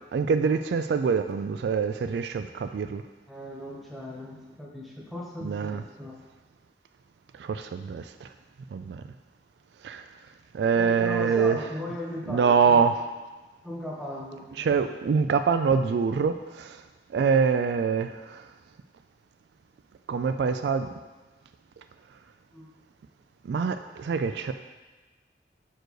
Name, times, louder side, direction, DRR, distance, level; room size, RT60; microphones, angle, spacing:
voice 1, 0.1-3.0 5.4-5.8 7.4-8.3 8.7-9.0 9.8-10.0 10.5-11.6 12.3-12.9 14.6-16.8 17.1-18.4 20.1-20.9 23.5-24.5, right 6 dB, 70° right, 9 dB, 0.3 m, -25 dB
voice 2, 3.3-6.2 10.7-12.9 13.6-14.7 22.5-22.7, left 1 dB, ahead, -5 dB, 1.2 m, -37 dB
6.3 x 4.6 x 4.7 m, 1.2 s
head